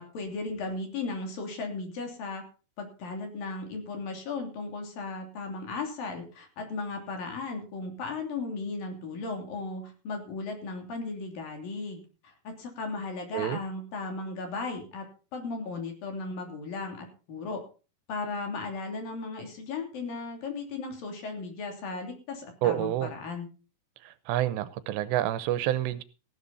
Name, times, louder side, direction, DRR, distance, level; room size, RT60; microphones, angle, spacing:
voice 1, 0.0-2.4 2.8-15.1 15.3-17.6 18.1-23.5, left 3 dB, 55° left, 4 dB, 4.6 m, -36 dB
voice 2, 22.6-23.1 24.3-26.0, right 13 dB, 85° right, 15 dB, 3.1 m, -28 dB
15.5 x 11.5 x 4.2 m, 0.34 s
omnidirectional pair, 4.9 m